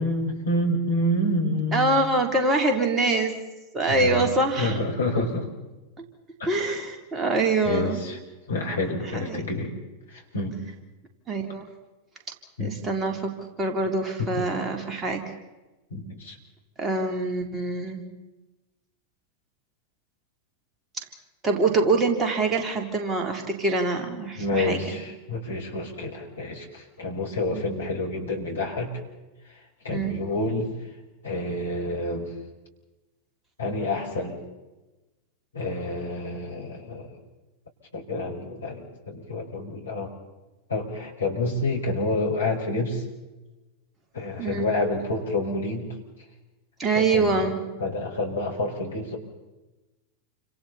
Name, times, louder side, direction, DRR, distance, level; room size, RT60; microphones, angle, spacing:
voice 1, 0.0-2.0 3.9-4.3 4.6-5.5 6.4-6.8 7.6-8.2 8.5-9.7 10.3-10.6 12.6-12.7 14.4-14.5 15.9-16.4 24.4-28.9 29.8-30.7 31.2-32.3 33.6-34.4 35.5-37.1 37.9-40.1 40.7-43.0 44.1-45.9 46.9-47.5 47.8-49.2, left 2 dB, 70° left, 0 dB, 5.6 m, -28 dB
voice 2, 1.7-3.3 3.7-4.8 5.1-5.2 6.5-8.1 9.1-9.4 11.3-11.7 12.6-13.3 13.6-15.2 16.8-18.0 21.0-21.1 21.4-25.0 27.5-27.6 29.9-30.2 44.4-44.7 46.8-47.6, right 3 dB, 20° right, 3 dB, 3.5 m, -25 dB
29.5 x 26.5 x 4.3 m, 1.1 s
figure-of-eight pair, 90°, 0 cm